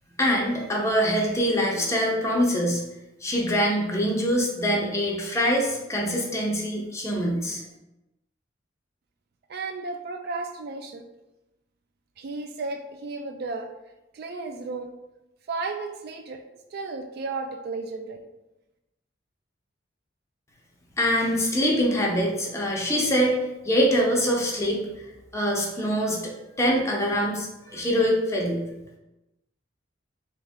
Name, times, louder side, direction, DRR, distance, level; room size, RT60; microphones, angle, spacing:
voice 1, 0.2-2.8 3.2-7.6 21.0-23.3 23.6-24.8 25.3-26.3 26.6-28.6, equal, 15° left, -2 dB, 0.8 m, -24 dB
voice 2, 9.5-11.0 12.2-13.7 14.1-14.9 15.5-16.4 16.7-18.3, right 3 dB, 55° right, 6 dB, 0.3 m, -33 dB
3.6 x 3.2 x 3.6 m, 0.96 s
head